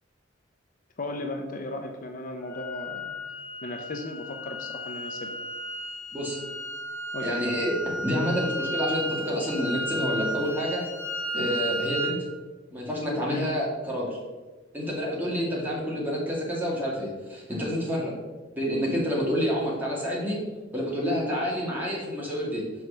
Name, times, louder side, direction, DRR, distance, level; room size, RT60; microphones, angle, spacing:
voice 1, 1.0-3.2 3.6-5.5 7.1-7.4 13.3-13.5 17.9-18.1, left 2 dB, 45° left, 4 dB, 0.6 m, -36 dB
sound 1, 2.5-12.2, equal, 15° left, 1.9 m, -33 dB
voice 2, 7.2-10.8 11.3-12.2 12.7-14.2 14.7-18.1 18.6-20.4 20.7-22.6, equal, 10° right, -5 dB, 2.2 m, -28 dB
6.2 x 4.6 x 6.4 m, 1.2 s
head